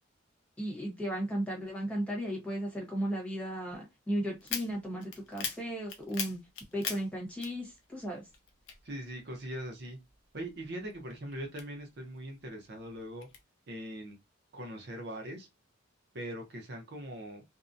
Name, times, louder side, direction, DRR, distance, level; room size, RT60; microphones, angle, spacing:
voice 1, 0.6-6.4 6.7-8.2, equal, 5° left, 1.0 m, -35 dB
sound 1, 4.4-8.1 8.3-9.7 10.1-12.2 12.7-13.4, left 7 dB, 65° left, 0.5 m, -40 dB
voice 2, 8.8-10.0 10.3-13.3 13.7-14.2 14.5-15.5 16.1-17.4, right 1 dB, 55° right, 0.6 m, -41 dB
2.6 x 2.0 x 2.5 m
head